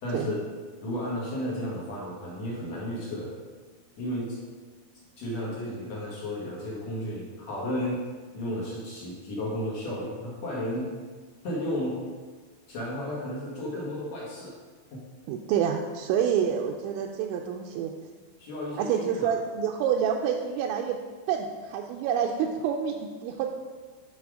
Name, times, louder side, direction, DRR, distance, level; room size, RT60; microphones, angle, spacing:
voice 1, 0.0-0.4 0.8-3.3 4.0-4.4 5.2-8.0 8.3-10.9 11.4-12.0 12.7-14.5 14.9-15.0 18.4-19.3, left 1 dB, 60° left, -5 dB, 1.8 m, -33 dB
voice 2, 15.3-17.9 18.8-21.0 21.3-22.9 23.2-23.5, right 8 dB, 85° right, 1 dB, 2.8 m, -27 dB
9.4 x 5.9 x 4.9 m, 1.4 s
omnidirectional pair, 5.4 m